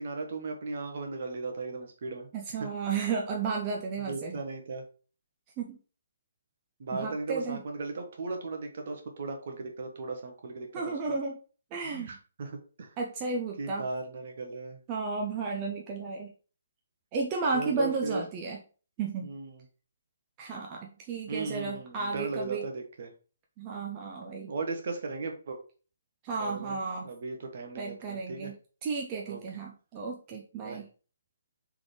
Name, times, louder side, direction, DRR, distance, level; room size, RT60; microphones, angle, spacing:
voice 1, 0.0-2.3 2.6-2.7 4.1-4.8 6.8-10.9 11.8-12.5 12.8-12.9 13.6-14.8 17.5-18.2 19.2-19.6 21.3-23.1 24.5-25.6 26.4-26.8 27.0-28.5 29.3-29.4 30.6-30.8, right 3 dB, 55° right, 4 dB, 1.0 m, -37 dB
voice 2, 2.3-4.4 5.6-5.8 6.9-7.6 10.7-11.4 11.7-12.2 13.0-13.9 14.9-16.3 17.1-18.6 19.0-19.3 20.4-22.7 23.6-24.5 26.2-27.1 27.8-28.5 28.8-30.9, right 4 dB, 30° right, 0 dB, 0.6 m, -33 dB
3.8 x 3.5 x 3.2 m, 0.38 s
hypercardioid pair, 145°, 0 cm